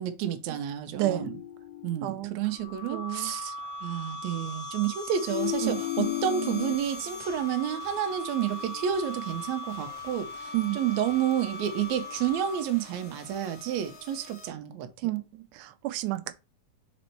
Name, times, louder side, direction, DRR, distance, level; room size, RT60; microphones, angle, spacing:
voice 1, 0.0-1.3 1.8-3.6 3.8-15.1, right 10 dB, 75° right, 2.0 m, -30 dB
sound 1, 1.0-2.3 5.3-6.8, left 14 dB, 85° left, 2.0 m, -33 dB
voice 2, 1.0-1.3 2.0-2.3 2.9-3.3 5.6-5.8 10.5-10.8 15.0-16.3, right 17 dB, 90° right, 2.1 m, -30 dB
sound 2, 2.4-12.8, left 2 dB, 10° left, 2.2 m, -40 dB
sound 3, 5.1-14.5, left 5 dB, 60° left, 2.0 m, -50 dB
5.2 x 4.2 x 4.4 m
omnidirectional pair, 3.5 m